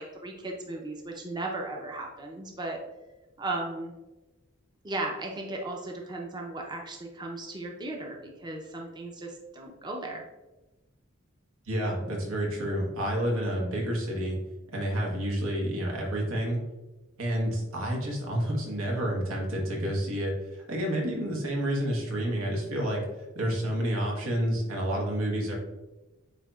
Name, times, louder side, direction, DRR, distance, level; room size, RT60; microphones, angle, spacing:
voice 1, 0.0-2.8 3.4-3.9 4.8-10.2, right 2 dB, 20° right, 1 dB, 0.5 m, -36 dB
voice 2, 11.7-14.4 14.7-16.6 17.2-23.0 23.3-25.6, equal, 90° right, -1 dB, 1.2 m, -29 dB
7.9 x 2.8 x 2.3 m, 1.1 s
head